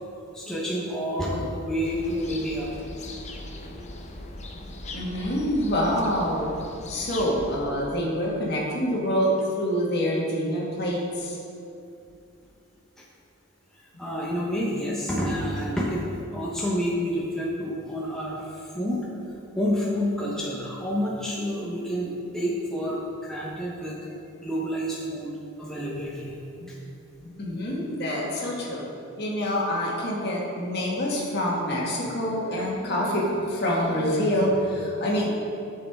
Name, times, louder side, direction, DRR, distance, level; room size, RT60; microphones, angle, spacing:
voice 1, 0.3-2.7 3.5-3.9 14.0-16.1 16.3-19.0 19.5-25.3 25.6-26.3 27.9-28.0 29.8-29.9, equal, ahead, -6 dB, 0.9 m, -29 dB
sound 1, 1.8-7.6, left 2 dB, 30° left, 0.6 m, -39 dB
voice 2, 4.9-6.5 6.9-11.4 27.4-28.8 29.2-35.3, equal, 50° left, -4 dB, 1.6 m, -26 dB
11.0 x 6.4 x 3.6 m, 2.6 s
head